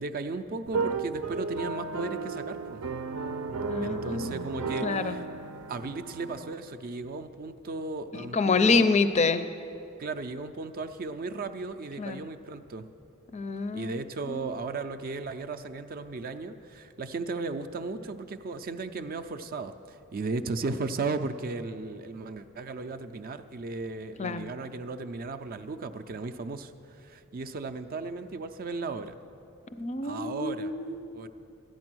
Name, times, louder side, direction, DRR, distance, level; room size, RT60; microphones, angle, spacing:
voice 1, 0.0-2.8 3.8-5.3 5.7-8.9 10.0-12.9 13.7-29.2 30.0-30.7 31.1-31.3, right 3 dB, 45° right, 9 dB, 0.4 m, -36 dB
sound 1, 0.7-6.5, right 4 dB, 90° right, 0.6 m, -34 dB
voice 2, 3.7-5.2 8.1-9.4 12.0-12.2 13.3-13.9 14.3-14.5 24.2-24.5 29.8-31.1, left 4 dB, 30° left, 11 dB, 0.4 m, -27 dB
13.0 x 9.5 x 6.1 m, 2.7 s
head